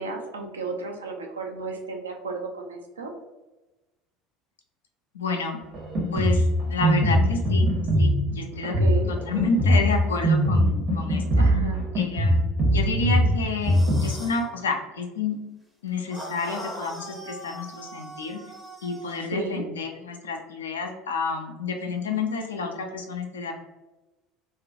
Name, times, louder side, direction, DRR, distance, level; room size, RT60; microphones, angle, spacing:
voice 1, 0.0-3.1 8.8-9.1 11.4-11.9 19.2-19.6, right 3 dB, 75° right, 2 dB, 0.4 m, -33 dB
voice 2, 5.1-5.6 6.1-7.7 8.0-8.8 9.1-11.5 11.9-15.4 15.8-18.4 18.8-23.6, left 4 dB, 75° left, 4 dB, 0.4 m, -30 dB
Drum kit, 5.7-14.0, equal, 40° right, 0.7 m, -22 dB
sound 1, 13.6-14.5 16.1-19.3, equal, 5° right, 0.5 m, -40 dB
2.4 x 2.1 x 2.5 m, 1.1 s
figure-of-eight pair, 70°, 0 cm